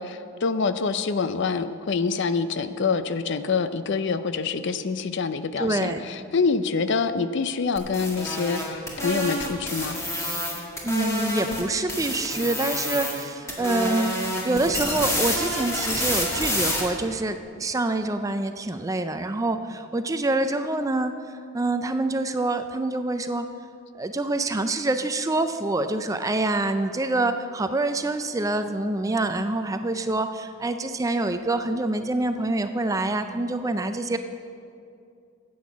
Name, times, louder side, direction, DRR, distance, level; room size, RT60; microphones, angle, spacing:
voice 1, 0.0-10.0, left 5 dB, 60° left, 12 dB, 0.5 m, -26 dB
voice 2, 5.6-6.0 10.8-14.2 14.4-23.5 23.9-34.2, right 2 dB, 15° right, 9 dB, 0.4 m, -26 dB
sound 1, 7.8-11.6 11.9-13.2 13.5-16.8, left 1 dB, 15° left, 1.7 m, -28 dB
10.0 x 8.6 x 7.2 m, 2.5 s
head